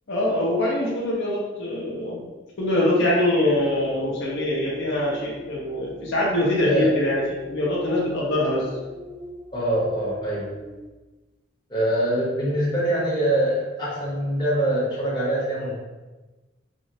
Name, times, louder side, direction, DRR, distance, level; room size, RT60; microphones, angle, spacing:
voice 1, 0.1-2.2 2.6-7.2 7.5-8.7, left 1 dB, 65° left, -5 dB, 0.6 m, -23 dB
sound 1, 3.6-10.9, right 1 dB, 30° right, 0.5 m, -41 dB
voice 2, 6.6-6.9 9.5-10.5 11.7-15.8, right 1 dB, 25° left, -7 dB, 0.8 m, -24 dB
3.3 x 2.0 x 2.7 m, 1.2 s
head